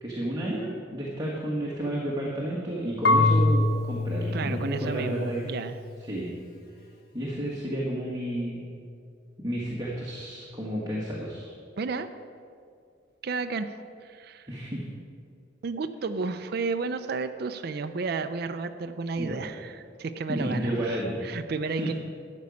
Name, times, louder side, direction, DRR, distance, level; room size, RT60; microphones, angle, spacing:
voice 1, 0.0-5.5 6.1-6.3 7.1-8.7 9.4-11.5 14.5-14.9 19.2-19.4 20.3-21.2 21.6-21.9, right 1 dB, 20° right, -5 dB, 1.6 m, -31 dB
Marimba xylophone / Wood, 3.0-5.9, left 2 dB, 60° left, 0.9 m, -25 dB
voice 2, 4.3-5.8 11.8-12.1 13.2-13.7 14.0-14.5 15.6-21.9, right 4 dB, 60° right, 8 dB, 0.5 m, -32 dB
13.0 x 5.3 x 8.4 m, 2.3 s
head